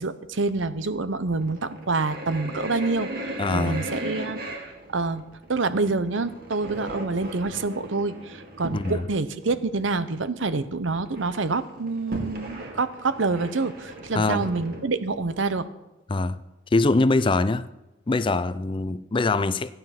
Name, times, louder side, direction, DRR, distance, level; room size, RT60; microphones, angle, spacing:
voice 1, 0.0-4.4 4.9-15.7, right 3 dB, 80° right, 0.8 m, -27 dB
sound 1, 1.3-9.1 9.4-9.5 10.0-10.1 10.2-10.8 11.1-14.8, right 1 dB, 50° right, 2.2 m, -37 dB
voice 2, 3.4-3.9 8.7-9.0 14.1-14.5 16.1-16.4 16.7-17.7 18.1-19.7, left 3 dB, 25° left, 0.4 m, -23 dB
14.5 x 9.4 x 5.9 m
head